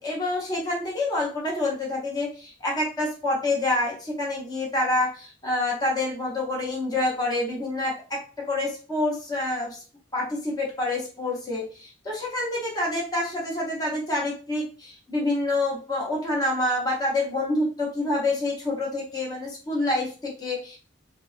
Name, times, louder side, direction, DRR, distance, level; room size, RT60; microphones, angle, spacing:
voice 1, 0.0-8.2 8.5-9.8 10.1-20.8, left 2 dB, 20° left, -4 dB, 0.7 m, -27 dB
2.7 x 2.2 x 2.4 m, 0.37 s
head